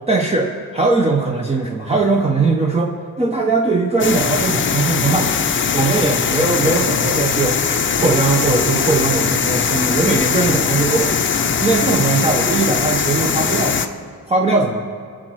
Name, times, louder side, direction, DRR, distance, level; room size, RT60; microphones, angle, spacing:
voice 1, 0.1-7.6 8.0-11.2 11.6-13.8 14.3-14.8, right 3 dB, 15° right, 1 dB, 0.8 m, -19 dB
sound 1, 4.0-13.9, left 6 dB, 35° left, 0.6 m, -20 dB
22.0 x 7.6 x 4.7 m, 2.2 s
cardioid pair, 120°, 36 cm